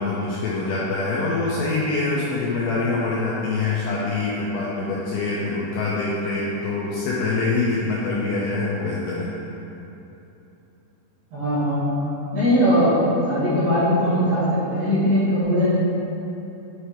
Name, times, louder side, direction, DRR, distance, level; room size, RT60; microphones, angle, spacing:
voice 1, 0.0-9.3, left 3 dB, 85° left, -6 dB, 2.6 m, -25 dB
voice 2, 11.3-11.9 12.3-12.9 13.3-15.6, equal, 65° right, -13 dB, 2.5 m, -20 dB
8.1 x 3.2 x 4.3 m, 2.9 s
omnidirectional pair, 5.8 m